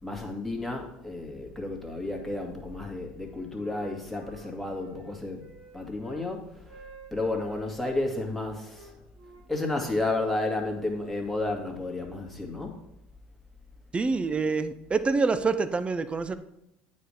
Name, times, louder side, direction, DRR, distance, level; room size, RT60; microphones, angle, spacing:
voice 1, 0.0-5.4 5.7-6.5 7.1-8.9 9.5-12.8, left 2 dB, 5° left, 1.9 m, -32 dB
Wind instrument woodwind instrument, 2.0-2.9 3.2-6.3 6.6-8.1 8.7-11.2, right 5 dB, 70° right, 2.5 m, -52 dB
voice 2, 13.9-16.4, right 4 dB, 25° right, 0.6 m, -26 dB
9.0 x 4.3 x 4.9 m
hypercardioid pair, 80°, 5 cm